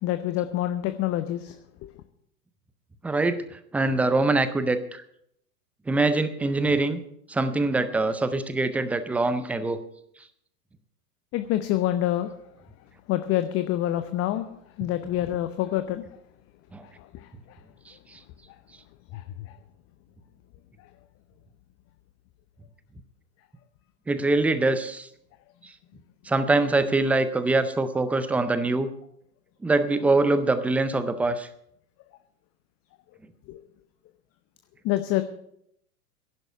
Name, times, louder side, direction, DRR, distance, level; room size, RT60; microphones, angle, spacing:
voice 1, 0.0-1.6 1.8-1.9 11.3-12.3 13.1-14.5 14.8-16.0 16.8-17.6 19.1-19.6 33.5-33.6 34.8-35.2, left 13 dB, 30° left, 10 dB, 0.8 m, -27 dB
voice 2, 3.0-5.0 5.9-7.0 7.3-9.8 16.7-16.8 17.9-18.2 24.1-25.1 25.6-25.7 26.3-28.9 29.6-31.5, right 2 dB, 5° right, 11 dB, 0.4 m, -24 dB
11.0 x 11.0 x 6.8 m, 0.72 s
figure-of-eight pair, 100°, 48 cm